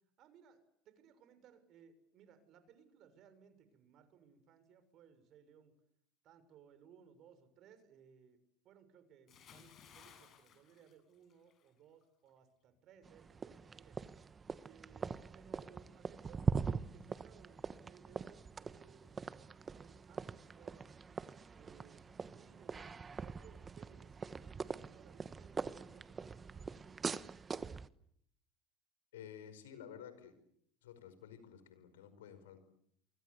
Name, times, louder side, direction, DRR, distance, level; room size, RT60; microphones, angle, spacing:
voice 1, 0.2-5.7 6.2-14.0 14.6-21.0 21.5-26.9, right 7 dB, 55° right, 11 dB, 6.5 m, -63 dB
Bathtub (filling or washing) / Splash splatter, 9.3-11.7 12.0-12.3, left 8 dB, 45° left, 7.9 m, -60 dB
sound 1, 13.1-27.9, right 5 dB, 25° right, 1.3 m, -42 dB
voice 2, 29.1-30.4 30.8-32.6, left 9 dB, 90° left, 11 dB, 5.2 m, -52 dB
28.5 x 25.0 x 8.3 m, 0.70 s
hypercardioid pair, 85°, 0 cm